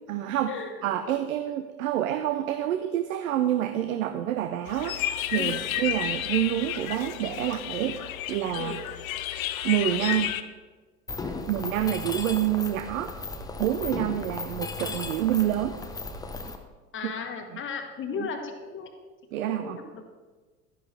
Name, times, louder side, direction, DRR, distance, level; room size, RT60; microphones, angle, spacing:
voice 1, 0.1-0.5 0.8-8.0 8.3-8.8 9.6-10.3 11.2-13.1 13.6-15.8 17.0-17.1 19.3-19.8, right 12 dB, 65° right, 9 dB, 0.7 m, -27 dB
sound 1, 4.7-10.4, left 11 dB, 60° left, 0.7 m, -31 dB
Mechanisms, 11.1-16.5, left 3 dB, 10° left, 0.7 m, -36 dB
voice 2, 11.3-11.6 16.9-18.9 19.4-20.0, left 5 dB, 25° left, 4 dB, 1.5 m, -36 dB
11.5 x 10.5 x 3.3 m, 1.3 s
figure-of-eight pair, 80°, 46 cm